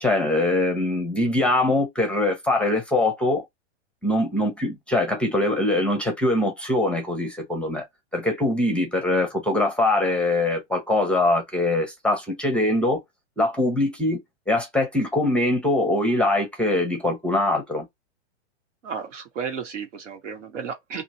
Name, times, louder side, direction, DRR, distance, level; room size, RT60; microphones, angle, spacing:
voice 1, 0.0-3.4 4.0-7.8 8.1-13.0 13.4-14.2 14.5-17.9, left 2 dB, 5° left, 0.6 m, -23 dB
voice 2, 18.8-21.0, right 6 dB, 85° right, 1.4 m, -33 dB
2.9 x 2.5 x 2.8 m
hypercardioid pair, 140°, 36 cm